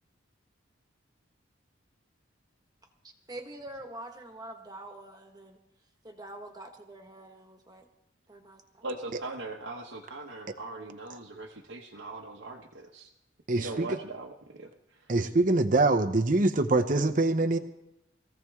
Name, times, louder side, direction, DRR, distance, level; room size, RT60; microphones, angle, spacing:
voice 1, 3.0-5.6 6.0-7.9 8.3-8.8, right 1 dB, 20° right, 4 dB, 1.4 m, -45 dB
voice 2, 8.8-13.1 13.5-15.1, right 2 dB, 70° right, 0 dB, 1.1 m, -40 dB
voice 3, 13.5-14.0 15.1-17.6, right 2 dB, 40° right, 7 dB, 0.7 m, -24 dB
20.5 x 15.5 x 3.6 m, 0.88 s
head